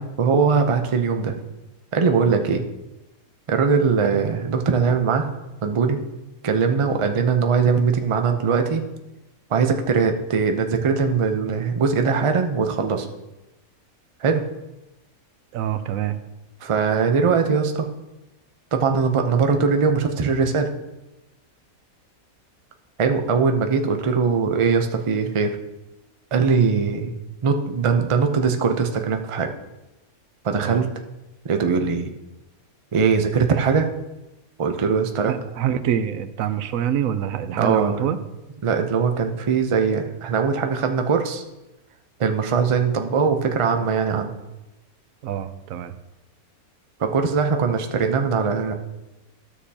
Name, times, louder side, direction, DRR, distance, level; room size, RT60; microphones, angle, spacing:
voice 1, 0.0-1.3 1.9-2.7 3.5-5.2 5.6-6.0 6.4-8.8 9.5-13.1 14.2-14.4 16.6-17.9 18.7-20.7 23.0-25.6 26.3-27.1 27.4-29.5 30.4-30.9 31.4-32.1 32.9-33.9 34.6-35.3 37.5-38.1 38.6-41.4 42.2-44.3 47.0-48.7, right 5 dB, 50° right, 5 dB, 0.3 m, -21 dB
voice 2, 15.5-16.2 30.6-30.8 35.3-38.2 45.2-45.9, right 9 dB, 70° right, 11 dB, 1.0 m, -25 dB
12.5 x 6.5 x 2.8 m, 1.0 s
omnidirectional pair, 1.5 m